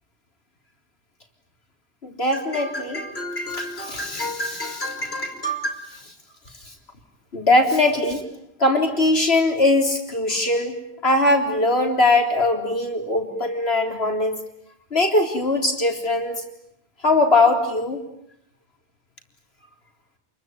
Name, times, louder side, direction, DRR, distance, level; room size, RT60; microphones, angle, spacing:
voice 1, 2.0-6.0 7.3-8.2 8.6-10.8 11.0-14.4 14.9-16.4 17.0-18.0, left 2 dB, 65° left, 3 dB, 4.0 m, -21 dB
29.0 x 22.0 x 9.3 m, 0.76 s
omnidirectional pair, 1.1 m